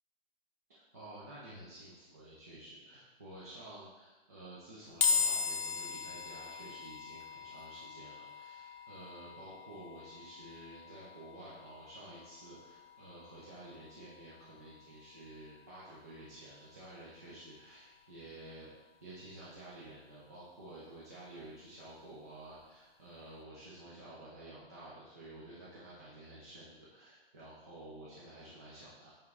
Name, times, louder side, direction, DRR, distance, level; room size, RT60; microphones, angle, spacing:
voice 1, 0.7-18.7 19.0-29.1, right 1 dB, 15° right, -8 dB, 0.4 m, -51 dB
sound 1, 5.0-18.3, left 5 dB, 50° left, 0.6 m, -40 dB
8.7 x 3.6 x 3.2 m, 1.2 s
hypercardioid pair, 170°, 31 cm